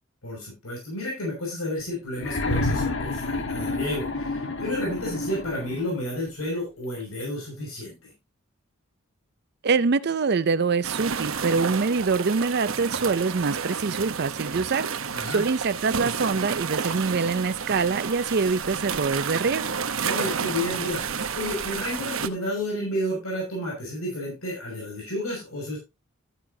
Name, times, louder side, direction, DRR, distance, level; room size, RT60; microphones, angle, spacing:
voice 1, 0.2-8.1 15.1-15.4 20.0-25.8, left 1 dB, 85° left, 6.2 m, -31 dB
sound 1, 2.2-6.0 7.2-7.3, left 2 dB, 60° left, 1.4 m, -29 dB
voice 2, 9.6-14.9 15.3-19.7, right 4 dB, 50° right, 0.5 m, -24 dB
sound 2, 10.8-22.3, right 6 dB, 70° right, 1.0 m, -30 dB
14.0 x 8.9 x 2.8 m
head